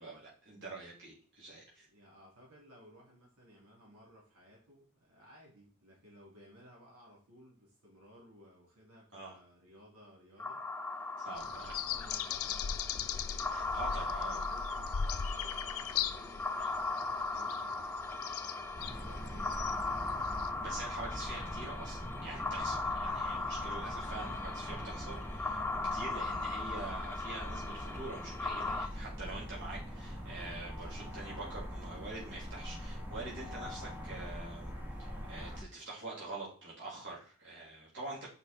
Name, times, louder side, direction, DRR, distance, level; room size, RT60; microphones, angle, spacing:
voice 1, 0.0-1.9 9.1-9.4 11.2-11.8 13.5-14.4 20.6-34.7 35.0-38.3, right 2 dB, 55° right, -6 dB, 3.3 m, -45 dB
voice 2, 1.8-10.6 11.3-18.3 18.8-19.9, equal, 85° right, -4 dB, 3.0 m, -58 dB
sound 1, 10.4-28.9, left 3 dB, 10° left, 0.4 m, -38 dB
sound 2, 11.4-20.5, left 8 dB, 70° left, 0.5 m, -39 dB
sound 3, 18.8-35.6, equal, 10° right, 1.1 m, -43 dB
6.0 x 5.3 x 4.3 m, 0.41 s
head